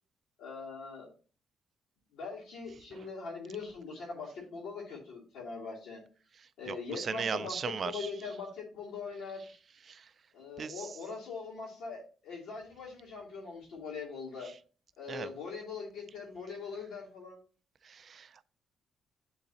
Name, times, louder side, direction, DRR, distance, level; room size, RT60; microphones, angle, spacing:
voice 1, 0.4-1.1 2.1-6.0 6.6-7.6 7.8-9.5 10.3-14.5 15.0-17.4, left 4 dB, 70° left, 2.4 m, -42 dB
voice 2, 6.7-8.1 9.9-10.1 10.6-10.9 15.1-15.3 17.8-18.5, right 6 dB, 35° right, 0.3 m, -38 dB
9.8 x 3.9 x 2.7 m
cardioid pair, 165°, 0 cm